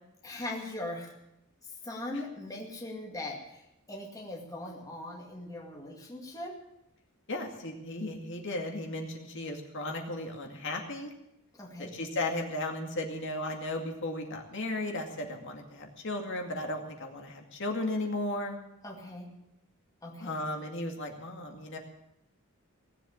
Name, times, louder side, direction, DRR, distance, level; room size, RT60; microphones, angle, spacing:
voice 1, 0.2-1.1 1.8-3.6 3.9-6.6 11.5-11.9 18.8-19.3 20.0-20.4, left 1 dB, 15° left, -1 dB, 2.2 m, -40 dB
voice 2, 7.3-11.1 11.8-18.6 20.2-21.8, left 1 dB, 60° left, 2 dB, 2.2 m, -35 dB
18.0 x 8.1 x 8.5 m, 0.86 s
head